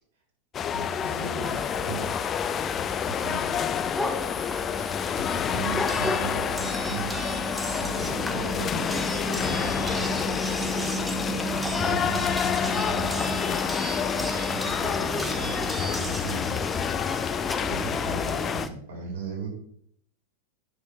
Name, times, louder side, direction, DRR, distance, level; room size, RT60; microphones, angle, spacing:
sound 1, 0.5-18.7, left 8 dB, 25° left, 0.3 m, -29 dB
voice 1, 0.7-2.1 3.1-3.6 5.1-7.2 7.8-10.5 11.3-13.6 14.5-16.6 17.7-19.5, right 3 dB, 60° right, -1 dB, 3.8 m, -37 dB
sound 2, 1.4-18.7, equal, 5° left, 0.8 m, -33 dB
sound 3, 5.9-8.3 8.9-16.4 17.5-18.0, right 2 dB, 10° right, 1.3 m, -38 dB
9.7 x 5.9 x 3.5 m, 0.66 s
figure-of-eight pair, 90°, 0 cm